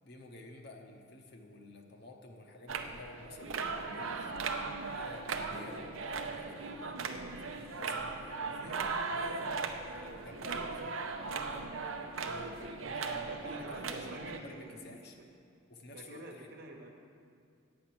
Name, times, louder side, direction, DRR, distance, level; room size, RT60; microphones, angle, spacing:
voice 1, 0.0-3.6 3.9-7.0 7.4-9.5 9.8-11.0 11.4-11.8 12.2-15.2 15.7-16.5, left 2 dB, 50° left, 3 dB, 0.9 m, -51 dB
sound 1, 2.7-14.4, right 4 dB, 75° right, 0.7 m, -38 dB
voice 2, 8.4-8.7 12.9-15.3 15.9-16.9, right 1 dB, 50° right, 2 dB, 1.1 m, -49 dB
8.7 x 8.6 x 6.0 m, 2.3 s
head